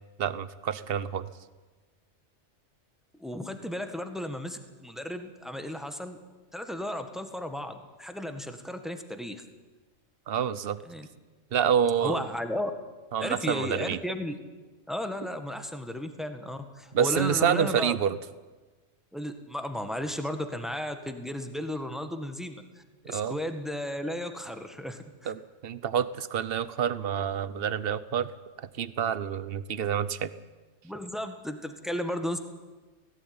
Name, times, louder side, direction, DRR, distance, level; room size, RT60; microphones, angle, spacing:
voice 1, 0.2-1.3 10.3-10.8 11.5-12.2 13.1-14.0 16.9-18.2 23.1-23.4 25.3-28.3 28.8-30.3, right 8 dB, 55° right, 16 dB, 1.0 m, -27 dB
voice 2, 3.2-6.2 6.5-9.4 10.8-11.1 12.0-12.7 13.2-14.3 14.9-18.0 19.1-25.3 30.8-32.4, left 1 dB, ahead, 7 dB, 1.5 m, -34 dB
17.5 x 16.5 x 9.6 m, 1.3 s
omnidirectional pair, 1.3 m